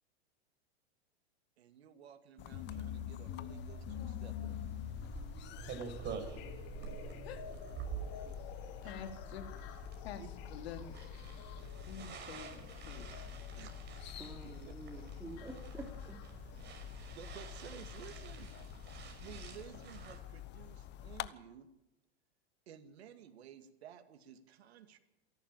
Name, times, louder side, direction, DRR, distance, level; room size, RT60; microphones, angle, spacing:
voice 1, 1.6-4.7 8.3-8.4 8.8-9.0 10.2-10.3 13.5-14.0 14.4-15.1 16.3-16.7 17.1-18.5 19.2-21.7 22.7-25.0, right 9 dB, 75° right, 7 dB, 2.3 m, -54 dB
sound 1, 2.4-18.3 19.5-19.6 20.4-20.5 21.1-21.2, left 9 dB, 50° left, 4.2 m, -48 dB
sound 2, 2.4-21.3, left 11 dB, 35° left, 1.0 m, -49 dB
sound 3, 4.3-20.2, right 6 dB, 35° right, 5.6 m, -48 dB
voice 2, 6.8-7.4 7.8-7.9 8.2-8.3 8.6-9.5 10.0-11.0 11.8-13.1, left 7 dB, 70° left, 6 dB, 3.4 m, -48 dB
voice 3, 14.2-16.2, right 2 dB, 10° right, 0 dB, 3.4 m, -48 dB
27.5 x 12.0 x 9.1 m, 0.95 s
hypercardioid pair, 115°, 32 cm